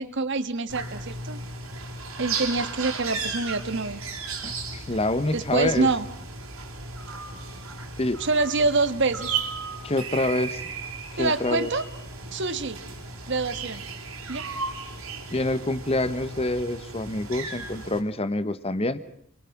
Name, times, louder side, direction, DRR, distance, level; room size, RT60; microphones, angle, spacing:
voice 1, 0.0-1.4 2.2-4.0 5.3-6.0 8.2-9.4 11.2-11.8 12.3-12.8 13.3-13.8 14.3-14.5, right 3 dB, 55° right, 11 dB, 1.5 m, -26 dB
sound 1, 0.7-18.0, right 4 dB, 75° right, 3.6 m, -35 dB
voice 2, 4.4-5.9 8.0-8.2 9.8-10.6 11.1-11.7 15.3-19.0, left 2 dB, 30° left, 14 dB, 1.1 m, -26 dB
29.5 x 22.5 x 6.0 m, 0.67 s
head